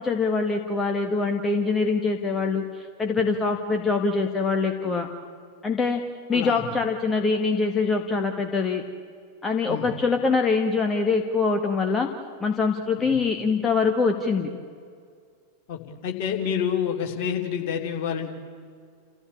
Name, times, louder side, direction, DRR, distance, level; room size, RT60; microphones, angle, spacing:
voice 1, 0.0-5.1 5.6-6.0 6.3-8.8 9.4-12.1 12.4-14.5, left 4 dB, 15° left, 4 dB, 1.7 m, -24 dB
voice 2, 6.3-6.6 9.7-9.9 13.0-13.2 15.7-18.3, left 8 dB, 45° left, 2 dB, 3.1 m, -28 dB
29.5 x 15.5 x 8.6 m, 2.2 s
figure-of-eight pair, 90°, 0 cm